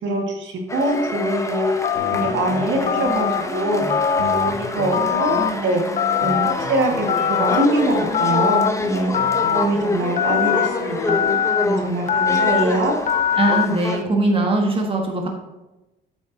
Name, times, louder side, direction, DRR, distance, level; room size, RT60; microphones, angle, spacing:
voice 1, 0.0-1.7 2.1-3.8 4.2-5.9 6.2-9.1 9.5-11.2 11.6-13.0, right 1 dB, 70° right, 1 dB, 1.8 m, -23 dB
sound 1, 0.7-14.0, left 2 dB, 15° left, 0.8 m, -27 dB
Telephone, 1.8-2.3 2.9-3.4 3.9-4.5 4.9-5.5 6.0-6.5 7.1-7.7 8.1-8.7 9.1-9.6 10.2-10.7 11.1-11.6 12.1-12.6 13.1-13.6, left 8 dB, 40° left, 0.4 m, -21 dB
sound 2, 2.0-11.4, left 2 dB, 85° left, 1.6 m, -31 dB
voice 2, 13.4-15.3, right 2 dB, 25° right, 1 dB, 1.3 m, -20 dB
8.7 x 7.9 x 2.8 m, 1.0 s
cardioid pair, 90°, 20 cm